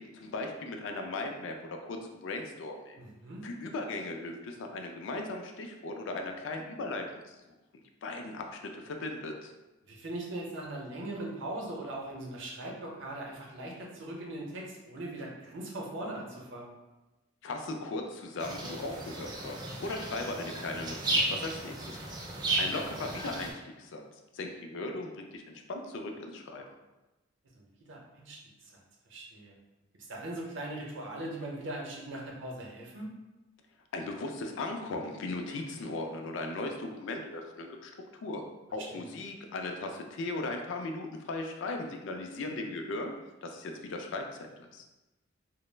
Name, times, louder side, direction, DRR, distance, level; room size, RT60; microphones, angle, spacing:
voice 1, 0.0-3.0 3.4-7.4 8.0-9.5 17.4-22.1 22.6-24.0 24.3-26.6 33.9-37.9 38.2-38.4 38.7-43.1 43.4-44.8, left 2 dB, 65° left, 4 dB, 0.3 m, -37 dB
voice 2, 3.0-3.4 9.9-16.7 27.6-28.4 29.1-29.5 30.1-33.1 38.9-39.1, right 1 dB, 65° right, -1 dB, 0.6 m, -40 dB
sound 1, 18.4-23.5, right 2 dB, 20° right, 0.3 m, -34 dB
2.2 x 2.0 x 3.2 m, 1.0 s
head